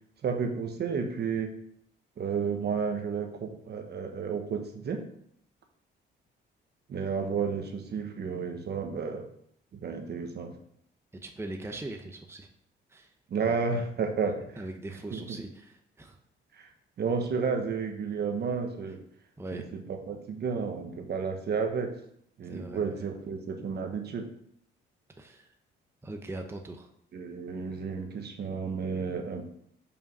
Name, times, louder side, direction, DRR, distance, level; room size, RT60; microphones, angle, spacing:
voice 1, 0.2-1.5 2.2-5.0 6.9-9.2 9.7-10.5 13.3-14.4 15.1-15.2 16.6-16.7 17.0-19.0 19.5-19.8 20.1-21.9 22.4-24.3 27.1-29.5, right 5 dB, 55° right, 4 dB, 1.2 m, -31 dB
voice 2, 11.2-12.5 12.9-13.1 13.4-13.6 14.6-16.2 19.4-19.7 22.5-23.0 25.2-25.5 26.0-26.9, right 2 dB, 10° right, 4 dB, 0.8 m, -40 dB
5.4 x 4.9 x 5.4 m, 0.69 s
cardioid pair, 90°, 20 cm